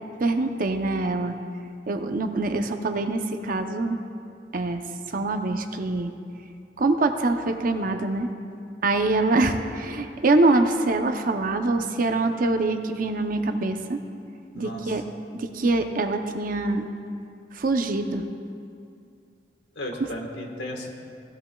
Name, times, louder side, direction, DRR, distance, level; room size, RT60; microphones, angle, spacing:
voice 1, 0.2-1.4 1.9-4.0 4.5-4.8 5.1-6.1 6.8-8.3 8.8-14.0 14.5-15.1 15.3-16.9 17.5-18.2, right 2 dB, 50° right, 6 dB, 0.6 m, -24 dB
voice 2, 14.5-15.0 19.7-20.9, equal, 75° left, 1 dB, 1.4 m, -35 dB
17.0 x 12.0 x 2.3 m, 2.4 s
head